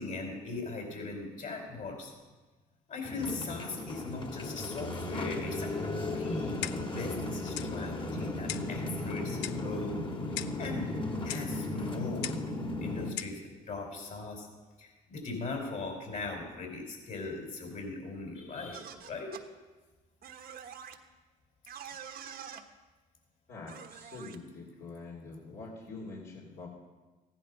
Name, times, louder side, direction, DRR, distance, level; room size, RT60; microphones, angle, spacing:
voice 1, 0.0-2.1 2.9-6.6 6.9-10.0 10.3-10.9 11.2-14.5 14.8-19.3, left 3 dB, 45° left, 2 dB, 4.4 m, -39 dB
sound 1, 3.0-13.1, left 2 dB, 25° left, 2.1 m, -36 dB
Clock, 6.6-7.0 7.6-7.7 8.5-8.8 9.4-9.7 10.4-10.6 11.3-11.5 12.2-12.5 13.2-13.4, left 13 dB, 80° left, 0.5 m, -38 dB
sound 2, 18.7-19.4 20.2-21.0 21.7-22.6 23.7-24.4, right 8 dB, 60° right, 1.3 m, -46 dB
voice 2, 23.5-26.7, left 3 dB, 65° left, -4 dB, 3.6 m, -45 dB
15.0 x 11.0 x 5.4 m, 1.2 s
supercardioid pair, 70°, 18 cm